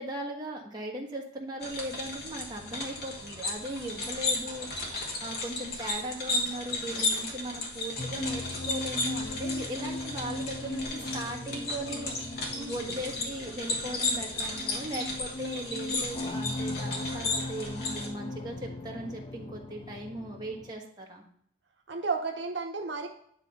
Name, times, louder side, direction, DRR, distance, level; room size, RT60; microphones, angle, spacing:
voice 1, 0.0-21.2, right 1 dB, 20° right, -1 dB, 1.3 m, -38 dB
sound 1, 1.6-18.1, left 2 dB, 55° left, 1.6 m, -34 dB
sound 2, 8.0-20.7, left 2 dB, 25° left, 0.4 m, -38 dB
voice 2, 12.5-13.0 17.2-17.4 21.9-23.1, right 4 dB, 65° right, 2 dB, 0.9 m, -34 dB
9.8 x 3.3 x 5.3 m, 0.67 s
head